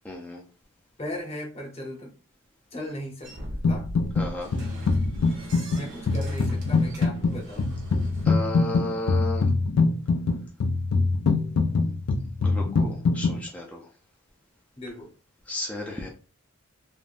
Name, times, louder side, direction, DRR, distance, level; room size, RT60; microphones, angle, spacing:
voice 1, 0.0-0.4 4.1-4.5 8.0-9.5 12.4-13.9 15.5-16.1, left 1 dB, 5° left, -2 dB, 0.4 m, -34 dB
voice 2, 1.0-2.1 2.7-3.9 5.7-7.8 14.8-15.1, left 1 dB, 30° left, -1 dB, 0.9 m, -37 dB
sound 1, 3.2-8.2, equal, 60° right, 0.9 m, -40 dB
sound 2, 3.6-4.3 4.5-13.4, left 3 dB, 80° left, 0.4 m, -24 dB
3.4 x 2.1 x 2.5 m, 0.36 s
head